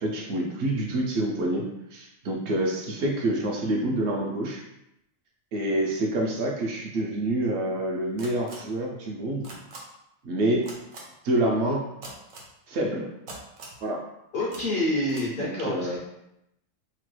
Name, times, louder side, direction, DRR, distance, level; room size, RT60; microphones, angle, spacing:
voice 1, 0.0-4.6 5.5-9.5 10.2-10.7 11.2-11.8 12.7-13.1 13.8-14.0 15.4-16.0, right 1 dB, 65° right, -1 dB, 0.8 m, -27 dB
sound 1, 8.2-8.6 9.4-9.8 10.6-11.0 12.0-12.5 13.3-13.8 14.5-14.6 15.1-15.2, right 3 dB, 85° right, 1.1 m, -41 dB
voice 2, 14.3-16.0, left 1 dB, 60° left, -4 dB, 0.6 m, -27 dB
3.0 x 2.2 x 3.1 m, 0.83 s
omnidirectional pair, 1.3 m